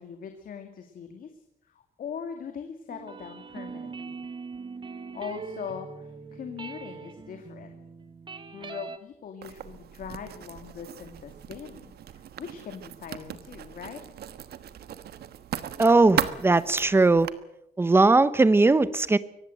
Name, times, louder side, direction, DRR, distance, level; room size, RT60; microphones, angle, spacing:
voice 1, 0.0-4.2 5.1-7.7 8.5-14.0, left 7 dB, 60° left, 5 dB, 2.4 m, -41 dB
sound 1, 2.9-9.0, right 4 dB, 30° right, 1.5 m, -41 dB
Writing, 9.4-17.3, right 10 dB, 80° right, 1.4 m, -37 dB
voice 2, 15.8-17.3 17.8-19.2, right 3 dB, 15° right, 15 dB, 0.9 m, -19 dB
24.0 x 18.5 x 7.8 m, 0.81 s
wide cardioid pair, 165°, 16 cm